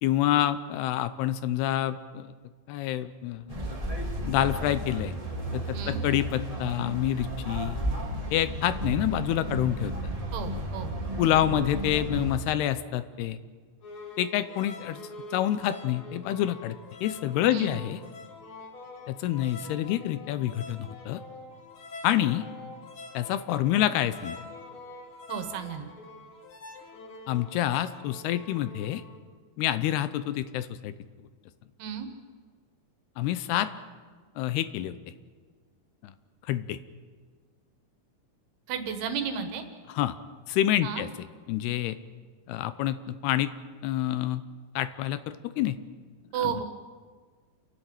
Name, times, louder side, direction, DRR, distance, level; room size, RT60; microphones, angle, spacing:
voice 1, 0.0-2.3 2.7-3.6 4.3-5.2 5.5-7.8 8.3-10.1 11.2-13.4 14.2-15.0 15.3-18.0 19.1-21.2 22.0-22.5 23.1-24.4 27.3-29.0 29.6-30.9 33.2-33.7 34.4-35.0 36.0-36.1 36.5-36.8 40.0-40.2 40.5-41.1 41.5-42.0 42.5-43.5 43.8-44.4 44.8-45.8 46.4-46.5, left 12 dB, 80° left, 13 dB, 2.7 m, -27 dB
sound 1, 3.5-12.4, right 1 dB, 15° right, 1.3 m, -33 dB
voice 2, 10.3-10.9 17.5-17.8 25.3-25.9 31.8-32.1 38.7-39.7 40.8-41.0 46.3-46.6, right 7 dB, 75° right, 7 dB, 3.4 m, -33 dB
sound 2, 13.8-29.2, left 3 dB, 45° left, 1.8 m, -45 dB
29.5 x 11.5 x 8.9 m, 1.5 s
omnidirectional pair, 4.8 m